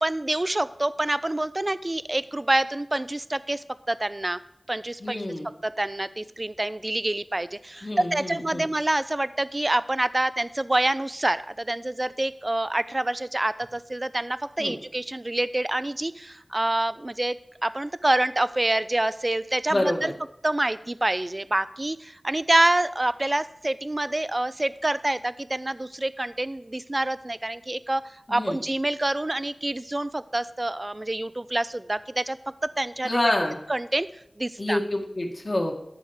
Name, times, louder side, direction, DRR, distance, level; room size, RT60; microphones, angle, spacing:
voice 1, 0.0-4.4 4.7-5.2 5.6-17.4 17.6-20.1 20.4-28.0 28.3-32.4 32.8-33.3 33.7-34.1 34.4-34.8, right 1 dB, 35° right, 15 dB, 0.3 m, -26 dB
voice 2, 5.0-5.5 7.8-8.7 14.6-14.8 19.7-20.1 28.3-28.6 33.0-33.6 34.6-35.7, left 1 dB, 50° left, 1 dB, 1.9 m, -27 dB
12.5 x 4.8 x 6.4 m, 0.78 s
wide cardioid pair, 55°, 0 cm